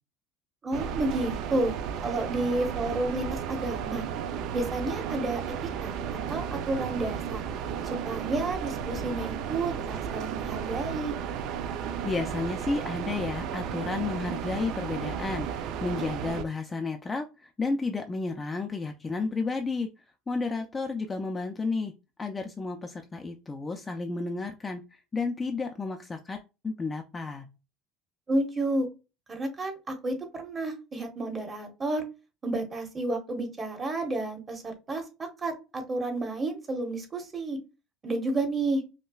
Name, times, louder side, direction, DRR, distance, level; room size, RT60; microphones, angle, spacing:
voice 1, 0.6-1.8 2.0-4.1 4.5-5.5 5.8-7.4 8.0-11.2 28.3-28.9 29.3-32.0 32.4-35.0 35.4-37.6 38.0-38.8, right 2 dB, 20° right, 4 dB, 1.1 m, -31 dB
sound 1, 0.7-16.4, right 8 dB, 60° right, 0.4 m, -34 dB
voice 2, 12.0-19.9 20.3-21.9 22.2-24.8 25.1-27.5, left 3 dB, 15° left, 4 dB, 0.4 m, -32 dB
5.4 x 2.1 x 2.3 m, 0.28 s
cardioid pair, 140°, 0 cm